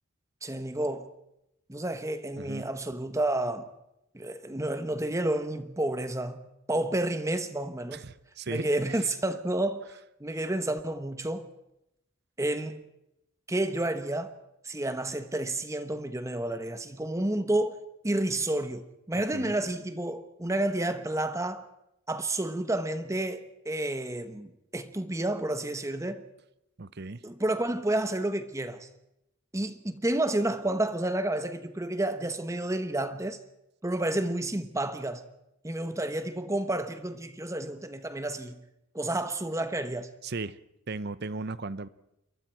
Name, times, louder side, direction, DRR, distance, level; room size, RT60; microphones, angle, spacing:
voice 1, 0.4-1.1 1.7-3.7 4.1-8.0 8.5-9.9 10.2-11.5 12.4-12.9 13.5-14.4 14.6-21.7 22.1-26.2 27.2-28.9 29.5-33.4 33.8-35.2 35.6-38.6 38.9-40.1, right 1 dB, 15° right, 1.0 m, -30 dB
voice 2, 7.9-9.1 19.3-19.5 26.8-27.2 40.2-40.6 40.9-41.9, right 3 dB, 50° right, 0.8 m, -36 dB
27.5 x 23.0 x 4.5 m
head